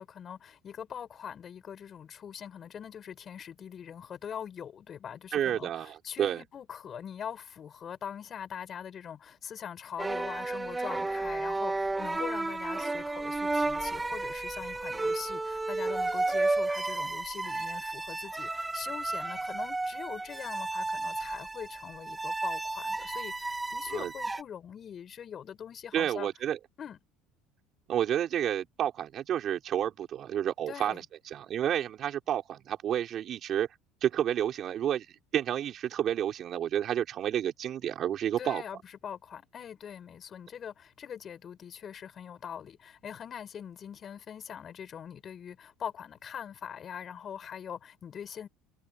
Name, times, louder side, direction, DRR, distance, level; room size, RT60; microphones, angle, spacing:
voice 1, 0.0-26.3 26.8-27.0 30.7-31.0 38.4-48.5, left 8 dB, 35° left, 7.9 m, -42 dB
voice 2, 5.3-6.4 23.9-24.1 25.9-26.6 27.9-31.0 31.3-33.7 34.0-35.1 35.3-38.6, right 10 dB, 45° right, 4.5 m, -30 dB
sound 1, 10.0-24.4, right 2 dB, 10° right, 2.2 m, -32 dB
supercardioid pair, 120°, 0 cm